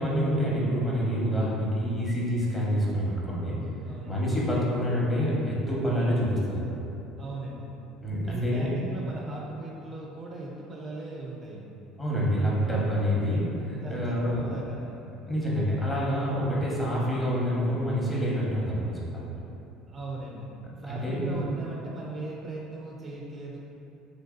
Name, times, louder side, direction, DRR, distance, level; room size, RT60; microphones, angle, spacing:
voice 1, 0.0-3.6 4.1-6.8 8.0-8.7 12.0-14.4 15.3-19.3 20.8-21.3, equal, 15° left, -6 dB, 0.8 m, -27 dB
voice 2, 3.8-4.2 7.2-7.7 8.1-11.8 12.6-12.7 13.8-14.0 14.3-15.1 19.9-20.5 20.8-23.6, right 2 dB, 35° right, -3 dB, 0.4 m, -38 dB
3.0 x 2.6 x 2.4 m, 2.8 s
hypercardioid pair, 75°, 0 cm